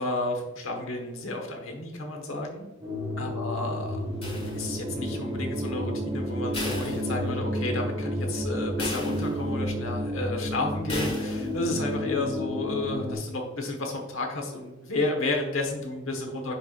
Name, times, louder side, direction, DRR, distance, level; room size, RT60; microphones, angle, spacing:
voice 1, 0.0-2.7 3.2-4.0 4.5-16.5, left 2 dB, 70° left, 2 dB, 1.2 m, -31 dB
sound 1, 2.8-13.2, equal, 20° right, 1.3 m, -31 dB
sound 2, 4.2-5.0 6.5-7.7 8.1-8.2 8.8-9.7 10.9-11.7, left 2 dB, 30° left, 1.8 m, -36 dB
10.0 x 4.5 x 2.4 m, 1.1 s
head